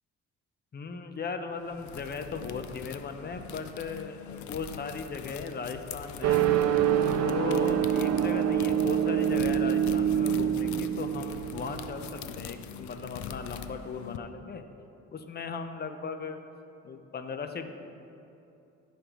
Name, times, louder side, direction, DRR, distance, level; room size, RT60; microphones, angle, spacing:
voice 1, 0.7-6.5 7.2-14.7 15.1-16.4 16.8-17.7, left 5 dB, 35° left, 7 dB, 0.7 m, -37 dB
sound 1, 1.6-14.2, left 9 dB, 70° left, 0.5 m, -43 dB
sound 2, 6.2-12.6, right 9 dB, 60° right, 0.5 m, -26 dB
14.0 x 5.2 x 3.0 m, 2.7 s
cardioid pair, 90°, 30 cm